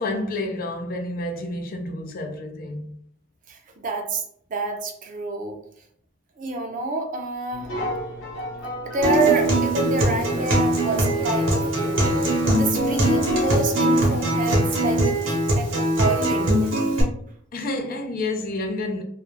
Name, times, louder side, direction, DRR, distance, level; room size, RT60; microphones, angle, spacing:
voice 1, 0.0-3.0 17.5-19.0, left 2 dB, 50° left, 0.4 m, -29 dB
voice 2, 3.5-4.2 4.5-5.6 6.4-7.7 8.8-16.7, right 3 dB, 45° right, 0.5 m, -28 dB
sound 1, 7.5-15.3, equal, 80° left, 1.0 m, -34 dB
Acoustic guitar, 9.0-17.0, right 1 dB, 85° right, 0.8 m, -21 dB
2.4 x 2.1 x 3.1 m
head